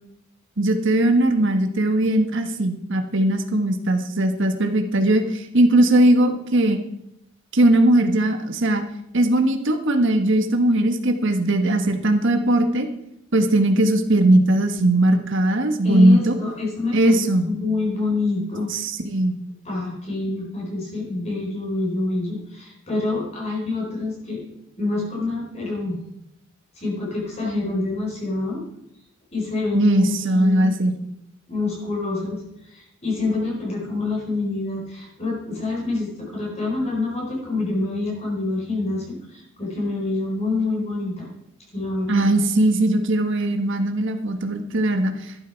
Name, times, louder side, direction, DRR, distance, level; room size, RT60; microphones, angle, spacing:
voice 1, 0.6-6.8 7.5-8.8 9.1-12.9 13.3-16.3 16.9-17.5 18.7-19.4 29.7-30.9 42.1-45.4, right 1 dB, 60° right, 6 dB, 1.5 m, -19 dB
voice 2, 15.8-18.7 19.6-24.4 24.8-26.0 26.8-28.6 29.3-30.7 31.5-41.3 41.7-42.3, left 2 dB, 30° left, -3 dB, 4.2 m, -27 dB
14.0 x 11.5 x 4.6 m, 0.81 s
head